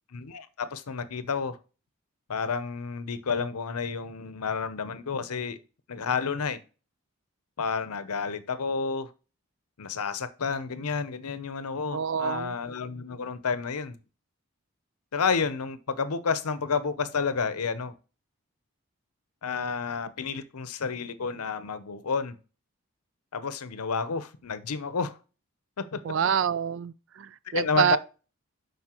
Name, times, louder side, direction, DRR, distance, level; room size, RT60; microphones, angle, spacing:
voice 1, 0.1-1.6 2.3-5.6 5.9-6.6 7.6-9.1 9.8-14.0 15.1-17.9 19.4-22.4 23.3-25.2 25.8-26.1 27.5-28.0, left 5 dB, 90° left, 0.7 m, -30 dB
voice 2, 11.9-12.6 26.0-28.0, right 8 dB, 55° right, 0.3 m, -27 dB
7.4 x 5.4 x 2.9 m
head